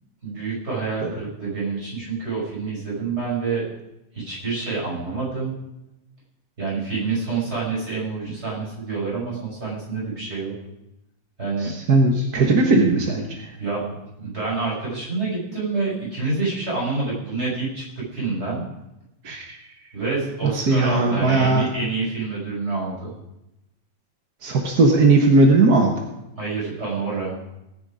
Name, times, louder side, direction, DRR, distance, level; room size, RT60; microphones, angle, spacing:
voice 1, 0.2-3.6 4.1-5.6 6.6-10.5 11.4-11.7 13.6-18.6 19.9-23.1 26.4-27.3, right 4 dB, 20° right, -6 dB, 6.4 m, -27 dB
voice 2, 11.6-13.3 19.2-19.4 20.5-21.6 24.4-25.9, right 3 dB, 45° right, 2 dB, 1.3 m, -17 dB
19.0 x 9.8 x 5.0 m, 0.90 s
omnidirectional pair, 3.3 m